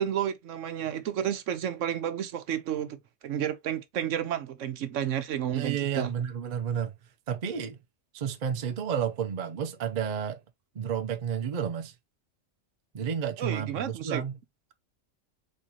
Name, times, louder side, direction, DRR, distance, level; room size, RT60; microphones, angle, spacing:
voice 1, 0.0-3.0 3.2-6.1 13.4-14.2, right 10 dB, 75° right, 1.0 m, -31 dB
voice 2, 5.5-7.0 7.3-7.8 8.1-10.4 10.7-11.9 12.9-14.4, right 8 dB, 45° right, 0.6 m, -31 dB
4.2 x 3.7 x 2.8 m
omnidirectional pair, 1.3 m